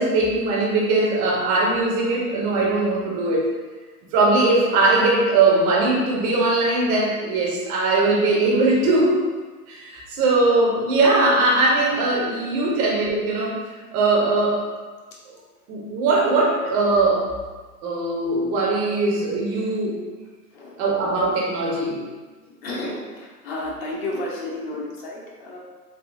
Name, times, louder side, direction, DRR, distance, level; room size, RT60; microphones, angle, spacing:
voice 1, 0.0-3.5 4.1-9.2 9.7-13.6 13.9-14.6 15.3-15.4 15.7-17.2 17.8-20.0 20.8-22.0, right 2 dB, 20° right, -3 dB, 0.4 m, -20 dB
voice 2, 20.5-20.8 22.6-25.6, left 1 dB, 40° left, -3 dB, 0.7 m, -32 dB
3.4 x 2.7 x 2.5 m, 1.3 s
hypercardioid pair, 125°, 47 cm